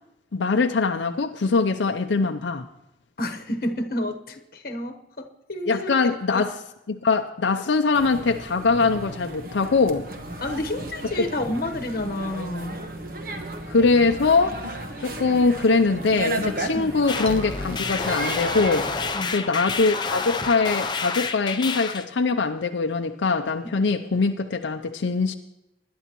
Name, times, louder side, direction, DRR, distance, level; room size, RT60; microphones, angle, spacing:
voice 1, 0.3-2.7 5.7-6.5 6.9-10.0 13.7-18.9 19.3-25.3, left 4 dB, 80° left, 5 dB, 0.5 m, -22 dB
voice 2, 3.2-6.5 7.6-7.7 10.4-12.8 16.7-17.0 19.1-19.3, left 1 dB, 50° left, 5 dB, 1.1 m, -30 dB
sound 1, 7.9-19.1, right 1 dB, 50° right, 1.2 m, -34 dB
sound 2, 17.1-22.0, left 4 dB, 25° left, 0.5 m, -29 dB
20.0 x 11.0 x 3.0 m, 0.92 s
head